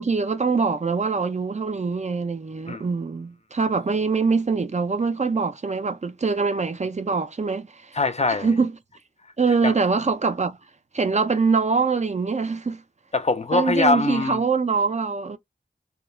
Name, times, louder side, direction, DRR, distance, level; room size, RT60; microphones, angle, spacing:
voice 1, 0.0-8.0 8.4-8.7 9.4-10.6 10.9-12.8 13.5-15.4, right 4 dB, 40° right, 0.4 m, -23 dB
voice 2, 7.9-8.5 9.6-9.7 13.1-14.4, left 3 dB, 35° left, 0.4 m, -22 dB
2.3 x 2.1 x 3.0 m
wide cardioid pair, 45°, 19 cm